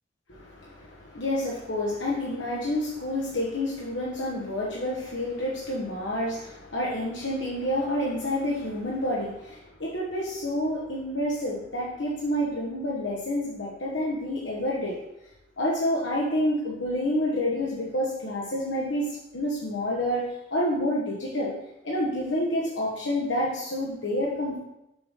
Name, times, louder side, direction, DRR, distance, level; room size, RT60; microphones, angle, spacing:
voice 1, 0.3-14.9 15.6-21.5 21.8-24.6, left 1 dB, 75° left, -4 dB, 1.3 m, -28 dB
6.8 x 3.7 x 5.5 m, 0.86 s
head